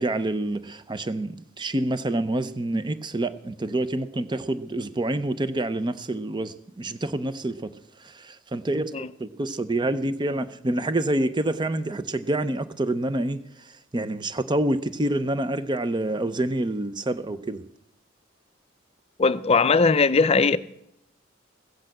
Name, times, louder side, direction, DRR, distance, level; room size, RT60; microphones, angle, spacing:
voice 1, 0.0-7.7 8.0-13.4 13.9-17.6, right 1 dB, 25° right, 0.6 m, -27 dB
voice 2, 19.2-20.6, left 4 dB, 30° left, 0.5 m, -19 dB
15.5 x 8.1 x 7.6 m
head